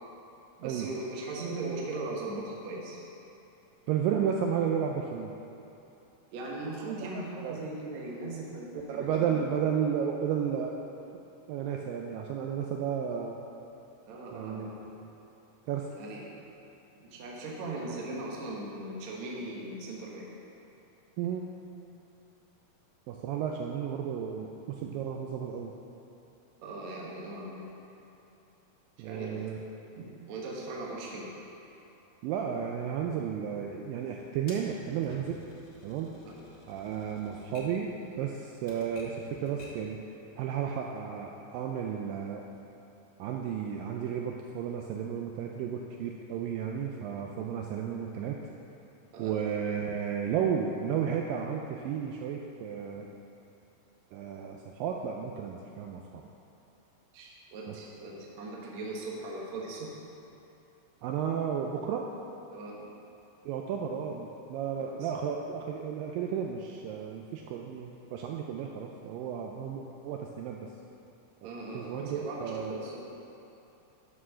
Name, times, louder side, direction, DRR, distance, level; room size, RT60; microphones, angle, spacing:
voice 1, 0.6-3.0 6.3-9.4 14.0-14.9 16.0-16.2 17.0-20.3 26.6-27.7 29.0-29.4 30.0-31.3 36.1-36.4 49.1-49.4 57.1-60.0 62.5-62.9 64.8-65.1 71.4-73.1, right 2 dB, 65° right, -3 dB, 1.9 m, -39 dB
voice 2, 3.9-5.3 7.0-7.1 7.4-7.6 8.9-10.7 11.5-13.4 14.3-15.1 15.7-15.9 21.2-21.5 23.1-25.7 29.0-29.6 32.2-35.4 35.8-36.1 36.7-40.0 40.4-42.4 43.2-48.4 49.2-53.1 54.1-56.2 57.7-57.8 61.0-62.1 63.5-70.7 71.4-72.7, right 8 dB, 90° right, 1 dB, 2.0 m, -33 dB
Typewriter, 34.5-39.9, left 2 dB, 85° left, 1.1 m, -53 dB
9.4 x 6.2 x 6.3 m, 3.0 s
omnidirectional pair, 4.5 m